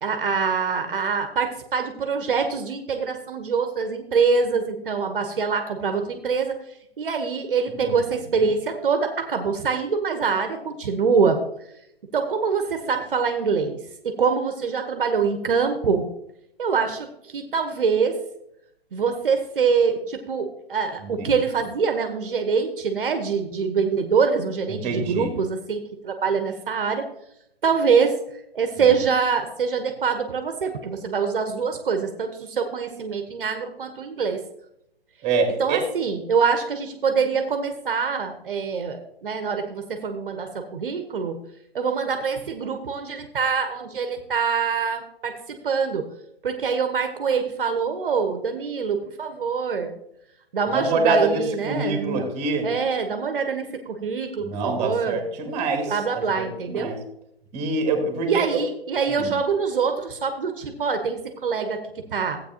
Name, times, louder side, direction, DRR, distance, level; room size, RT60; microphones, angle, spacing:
voice 1, 0.0-6.5 7.0-11.4 12.1-13.8 14.0-16.0 16.6-18.1 18.9-27.0 27.6-28.1 28.5-34.4 35.6-41.4 41.7-46.1 46.4-49.9 50.5-52.3 52.6-55.2 55.9-56.9 58.3-62.4, right 5 dB, 60° right, 6 dB, 1.0 m, -24 dB
voice 2, 21.0-21.3 24.7-25.3 28.8-29.0 35.2-35.8 50.7-52.7 54.4-57.0 57.5-58.6 59.2-59.3, right 3 dB, 20° right, 5 dB, 1.7 m, -25 dB
13.5 x 8.2 x 2.9 m, 0.79 s
figure-of-eight pair, 130°, 30 cm